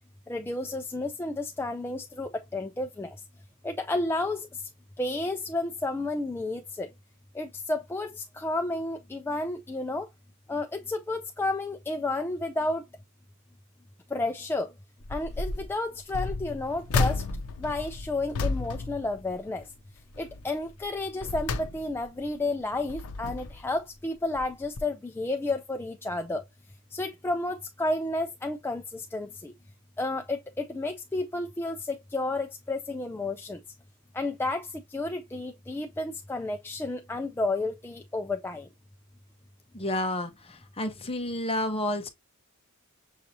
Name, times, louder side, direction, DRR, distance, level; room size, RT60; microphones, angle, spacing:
voice 1, 0.3-3.1 3.6-4.5 5.0-6.9 7.4-10.1 10.5-12.8 14.1-14.7 15.1-17.2 17.6-19.6 20.2-26.4 26.9-29.5 30.0-33.6 34.1-38.7, left 2 dB, 10° left, 0.3 m, -31 dB
sound 1, 15.0-15.7 16.1-19.8 20.1-20.4 20.9-22.2 22.7-23.7 24.3-24.5 24.8-24.9, left 3 dB, 75° left, 0.6 m, -32 dB
voice 2, 39.7-42.1, left 1 dB, 25° left, 0.8 m, -30 dB
6.5 x 2.8 x 2.6 m
head